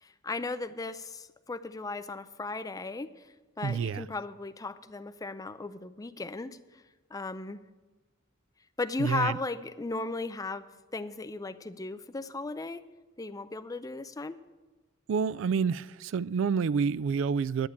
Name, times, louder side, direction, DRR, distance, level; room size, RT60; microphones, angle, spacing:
voice 1, 0.0-3.1 3.6-6.6 7.1-7.6 8.8-12.8 13.2-14.4, left 3 dB, 15° left, 0.5 m, -36 dB
voice 2, 3.6-4.1 9.0-9.4 15.1-17.7, right 6 dB, 65° right, 0.3 m, -28 dB
11.0 x 8.3 x 7.3 m
head